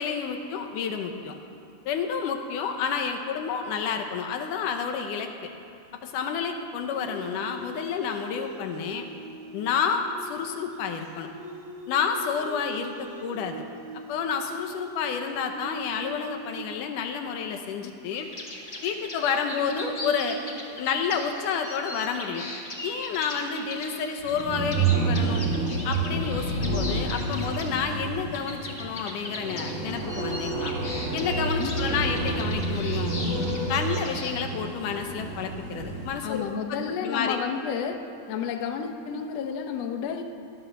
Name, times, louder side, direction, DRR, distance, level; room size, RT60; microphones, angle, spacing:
voice 1, 0.0-1.3 1.9-5.3 6.0-9.1 9.5-11.3 11.9-13.6 14.1-18.3 18.8-20.4 20.8-22.5 22.8-25.5 25.8-30.7 31.1-33.1 33.7-36.4 36.7-37.4, left 6 dB, 85° left, 5 dB, 2.6 m, -30 dB
sound 1, 6.8-17.2 17.7-17.8 19.3-21.2 23.0-24.4, right 2 dB, 75° right, 4.8 m, -41 dB
sound 2, 18.2-34.3, left 2 dB, 25° left, 1.6 m, -39 dB
sound 3, 24.2-36.2, right 3 dB, 25° right, 2.4 m, -29 dB
voice 2, 31.6-32.0 36.2-38.0 38.3-40.2, left 7 dB, 65° left, 5 dB, 1.9 m, -31 dB
18.5 x 11.5 x 6.8 m, 2.5 s
omnidirectional pair, 3.6 m